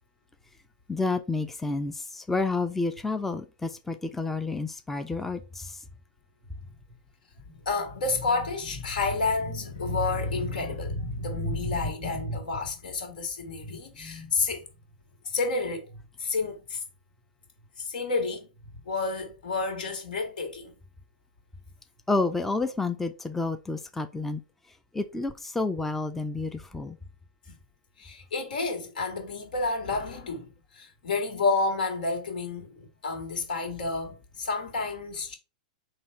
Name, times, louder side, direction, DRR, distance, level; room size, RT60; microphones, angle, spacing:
voice 1, 0.9-5.8 22.1-24.4 24.9-27.0, left 3 dB, 5° left, 0.4 m, -30 dB
voice 2, 7.4-14.6 15.2-16.8 17.8-18.5 18.9-20.7 28.0-35.3, left 3 dB, 75° left, 1.9 m, -30 dB
4.0 x 2.8 x 4.4 m
hypercardioid pair, 130°, 5 cm